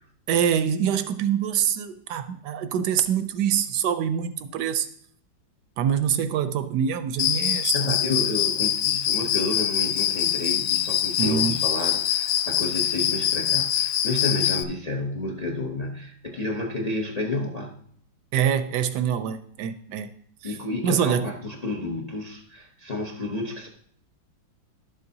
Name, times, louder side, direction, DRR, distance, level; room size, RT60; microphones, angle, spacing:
voice 1, 0.3-4.9 5.8-7.9 11.2-11.6 18.3-20.1 20.4-20.6 20.8-21.3, right 8 dB, 70° right, 1.1 m, -25 dB
Cricket, 7.2-14.6, left 10 dB, 75° left, 1.2 m, -24 dB
voice 2, 7.5-17.7 20.4-23.7, left 2 dB, 50° left, 0.4 m, -30 dB
11.5 x 7.7 x 2.7 m
omnidirectional pair, 2.1 m